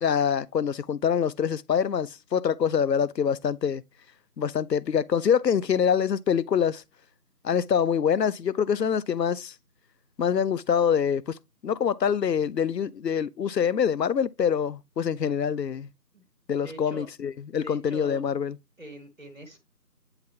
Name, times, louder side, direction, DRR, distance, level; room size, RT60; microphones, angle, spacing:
voice 1, 0.0-3.8 4.4-6.8 7.4-9.5 10.2-11.4 11.6-15.9 16.5-18.6, left 7 dB, 85° left, 0.6 m, -25 dB
voice 2, 16.6-17.1 17.5-18.2 18.8-19.6, equal, 55° right, 1.4 m, -43 dB
8.7 x 3.9 x 2.8 m
figure-of-eight pair, 175°, 48 cm